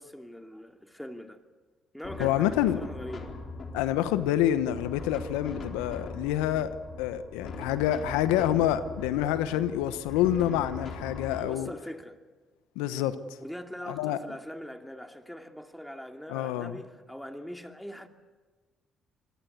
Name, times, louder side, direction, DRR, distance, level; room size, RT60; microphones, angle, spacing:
voice 1, 0.0-1.4 1.9-3.3 11.4-12.2 13.4-18.1, equal, 5° left, 2.6 m, -42 dB
sound 1, 2.0-11.4, left 3 dB, 50° left, 4.2 m, -41 dB
voice 2, 2.2-2.8 3.7-6.7 7.0-11.7 12.8-13.4 13.9-14.2 16.3-16.8, left 12 dB, 85° left, 1.0 m, -27 dB
25.5 x 20.0 x 8.3 m
hypercardioid pair, 55°, 0 cm